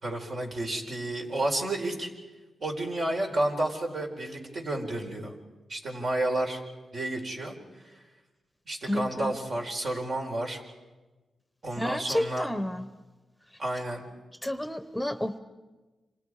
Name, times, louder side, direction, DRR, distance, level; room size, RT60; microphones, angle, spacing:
voice 1, 0.0-2.1 2.6-5.4 5.7-6.6 6.9-7.6 8.7-10.6 11.6-12.5 13.6-14.1, right 1 dB, 60° right, 2 dB, 4.4 m, -31 dB
voice 2, 8.8-9.3 11.8-12.8 14.4-15.4, left 1 dB, 5° left, 11 dB, 0.9 m, -30 dB
28.0 x 26.0 x 4.9 m, 1.2 s
cardioid pair, 70°, 0 cm